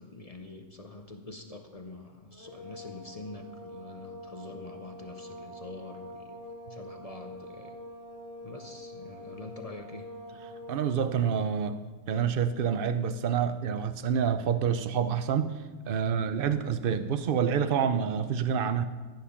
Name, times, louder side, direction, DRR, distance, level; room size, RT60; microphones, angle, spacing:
voice 1, 0.0-6.4 6.7-7.8 8.4-10.1, left 2 dB, 30° left, 5 dB, 0.7 m, -45 dB
sound 1, 2.3-11.0, left 1 dB, 10° right, 3.5 m, -45 dB
voice 2, 10.7-11.8 12.1-15.5 15.9-18.8, right 7 dB, 50° right, 11 dB, 0.7 m, -27 dB
14.5 x 9.5 x 5.7 m, 1.4 s
omnidirectional pair, 1.6 m